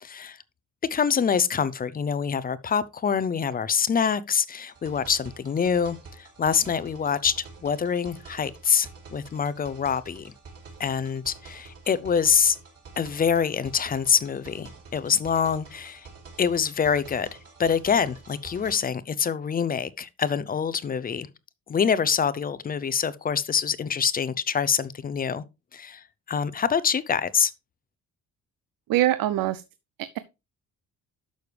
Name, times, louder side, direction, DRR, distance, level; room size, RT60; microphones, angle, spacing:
voice 1, 0.0-0.4 0.9-10.3 10.8-12.6 13.0-16.1 16.4-21.3 21.7-25.4 25.7-27.5, left 7 dB, 25° left, 0.5 m, -25 dB
sound 1, 4.7-18.7, right 4 dB, 45° right, 4.6 m, -47 dB
voice 2, 28.9-29.6 30.0-30.2, right 14 dB, 90° right, 0.7 m, -23 dB
12.0 x 6.4 x 3.3 m
cardioid pair, 165°, 33 cm